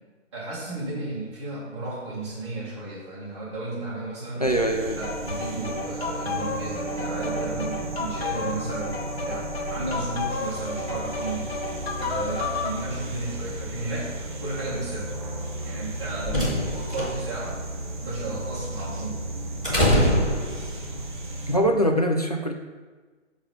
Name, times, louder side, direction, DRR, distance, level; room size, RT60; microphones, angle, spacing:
voice 1, 0.3-4.5 4.9-11.6 12.0-15.2 15.6-17.6 18.0-19.3, right 2 dB, 20° right, -8 dB, 1.6 m, -34 dB
voice 2, 4.4-5.0 21.5-22.5, equal, 35° left, 3 dB, 0.4 m, -22 dB
sound 1, 4.4-21.6, right 2 dB, 40° right, 0.7 m, -34 dB
sound 2, 5.0-12.8, left 4 dB, 55° left, 1.3 m, -32 dB
sound 3, 15.8-21.0, equal, 5° right, 0.7 m, -26 dB
6.6 x 3.9 x 6.1 m, 1.3 s
hypercardioid pair, 175°, 37 cm